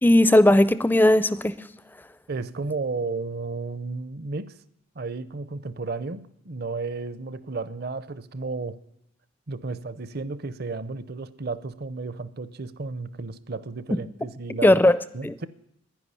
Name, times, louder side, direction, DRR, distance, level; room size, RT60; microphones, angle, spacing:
voice 1, 0.0-1.5 14.6-15.0 15.2-15.5, left 1 dB, 10° left, 0.4 m, -17 dB
voice 2, 2.3-4.5 5.0-8.8 9.5-14.8 15.1-15.5, right 3 dB, 50° right, 0.6 m, -33 dB
10.5 x 10.5 x 9.7 m
head